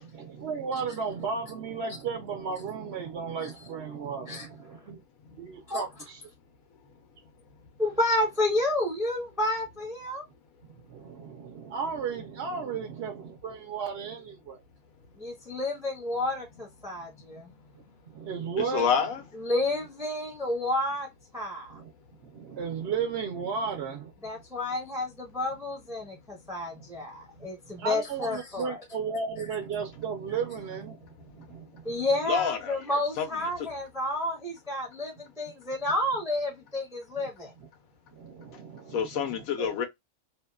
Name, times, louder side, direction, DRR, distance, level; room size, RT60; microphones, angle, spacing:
voice 1, 0.0-5.0 5.4-6.2 10.9-14.6 18.1-18.9 21.7-21.9 22.2-24.1 26.7-26.8 27.4-32.0 37.2-37.3 37.6-37.7 38.1-39.7, right 6 dB, 60° right, 0.7 m, -34 dB
voice 2, 7.8-10.2 15.2-17.5 19.4-21.1 21.3-21.8 24.2-28.8 31.8-37.5, left 1 dB, 5° right, 0.5 m, -30 dB
voice 3, 18.6-19.2 32.3-32.8 33.2-33.3 33.6-33.7 38.9-39.8, left 7 dB, 80° left, 1.1 m, -27 dB
2.7 x 2.2 x 2.2 m
omnidirectional pair, 1.5 m